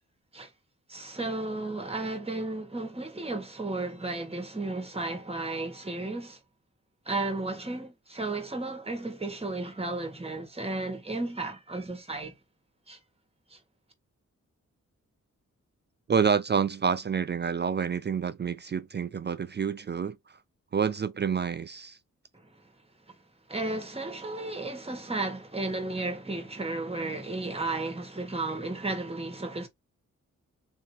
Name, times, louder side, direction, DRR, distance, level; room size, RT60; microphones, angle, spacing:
voice 1, 0.9-6.4 7.1-12.4 12.9-13.0 13.5-13.6 23.5-29.7, right 2 dB, 20° right, 1.3 m, -33 dB
voice 2, 16.1-20.2 20.7-22.0, right 6 dB, 35° right, 0.4 m, -28 dB
3.7 x 2.8 x 3.1 m
wide cardioid pair, 85°, 31 cm